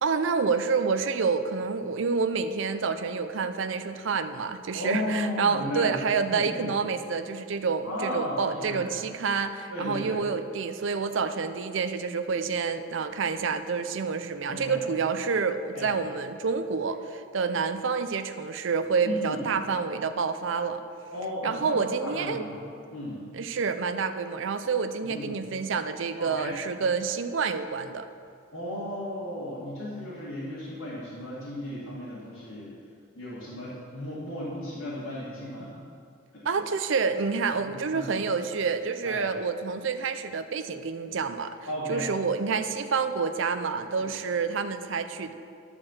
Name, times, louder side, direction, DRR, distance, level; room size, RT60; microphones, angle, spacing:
voice 1, 0.0-20.8 21.4-22.5 23.3-28.1 36.4-41.5 41.9-45.3, right 5 dB, 65° right, 9 dB, 0.5 m, -28 dB
voice 2, 4.7-5.9 6.3-6.7 7.8-8.9 9.7-10.2 14.5-14.8 15.7-15.9 19.0-19.4 21.1-22.6 22.9-23.2 25.0-25.3 26.2-26.6 28.5-32.7 33.1-35.7 36.3-36.6 37.7-38.0 39.0-39.2 41.7-42.1 44.0-44.1, left 1 dB, 85° left, -10 dB, 2.4 m, -35 dB
10.5 x 4.9 x 7.2 m, 2.4 s
head